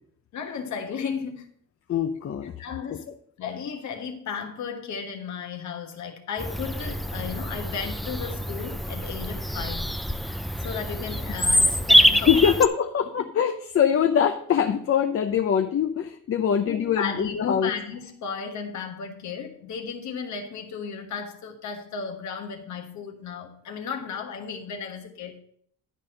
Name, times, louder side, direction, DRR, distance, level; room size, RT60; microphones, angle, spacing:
voice 1, 0.3-1.5 2.6-3.1 3.4-9.9 10.6-12.6 13.2-13.3 16.6-25.4, left 6 dB, 70° left, 1.3 m, -34 dB
voice 2, 1.9-2.5 12.3-17.7, left 8 dB, 45° left, 0.7 m, -23 dB
Bird vocalization bird call bird song, 6.4-12.7, equal, ahead, 0.5 m, -24 dB
11.0 x 4.2 x 6.4 m
cardioid pair, 90°, 30 cm